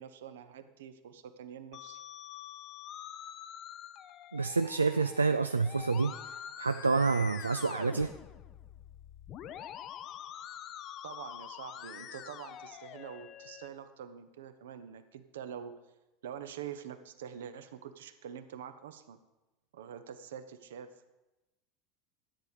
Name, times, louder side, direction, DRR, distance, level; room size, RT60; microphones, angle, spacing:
voice 1, 0.0-2.0 11.0-15.8 16.2-19.2 19.7-21.2, right 8 dB, 65° right, 11 dB, 0.8 m, -45 dB
Musical instrument, 1.7-13.7, left 10 dB, 40° left, 0.6 m, -46 dB
voice 2, 4.3-8.1, right 4 dB, 80° right, 9 dB, 0.3 m, -28 dB
13.0 x 9.2 x 4.9 m, 1.0 s
figure-of-eight pair, 75°, 0 cm